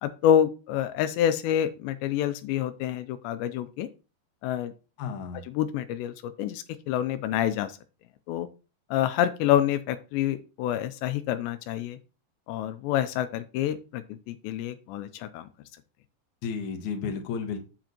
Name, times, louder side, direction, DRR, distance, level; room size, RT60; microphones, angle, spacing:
voice 1, 0.0-3.9 4.4-4.7 5.6-7.7 8.3-8.5 8.9-12.0 12.5-15.5, left 10 dB, 85° left, 11 dB, 2.8 m, -27 dB
voice 2, 5.0-5.4 16.4-17.6, left 6 dB, 60° left, 4 dB, 2.0 m, -32 dB
7.9 x 7.5 x 3.0 m, 0.32 s
omnidirectional pair, 5.1 m